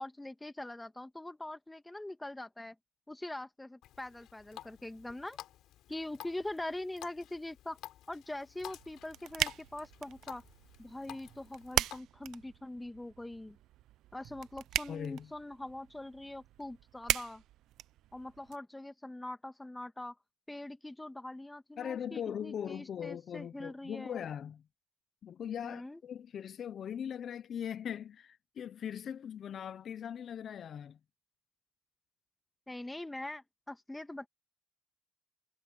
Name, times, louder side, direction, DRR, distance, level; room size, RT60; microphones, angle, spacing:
voice 1, 0.0-2.7 3.1-5.4 5.9-7.8 8.1-10.4 10.8-13.6 14.1-17.4 18.1-20.1 20.5-24.2 25.6-26.0 32.7-34.3, left 1 dB, 10° left, 1.7 m, -43 dB
Water tap faucet, 3.8-12.0, left 13 dB, 85° left, 3.5 m, -52 dB
sound 1, 8.6-18.6, right 13 dB, 85° right, 0.5 m, -39 dB
voice 2, 14.9-15.3 21.8-24.6 25.2-31.0, left 8 dB, 60° left, 0.6 m, -40 dB
cardioid pair, 90°, 0 cm